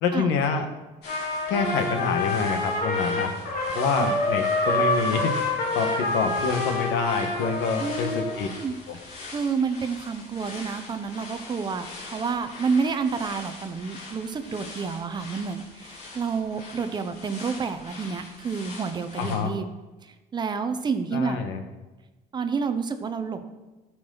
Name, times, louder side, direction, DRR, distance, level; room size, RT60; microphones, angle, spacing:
voice 1, 0.0-0.7 1.5-3.3 3.7-5.3 5.7-8.5 8.9-9.0 19.2-19.5 21.1-21.6, left 5 dB, 85° left, 6 dB, 1.3 m, -26 dB
sound 1, 1.0-19.4, left 3 dB, 65° left, 3.2 m, -43 dB
Trumpet, 1.1-8.4, left 2 dB, 50° left, 2.2 m, -27 dB
voice 2, 7.8-8.7 9.0-19.7 20.0-21.4 22.3-23.4, right 5 dB, 25° right, 9 dB, 0.6 m, -29 dB
13.0 x 6.1 x 3.9 m, 1.1 s
cardioid pair, 155°, 19 cm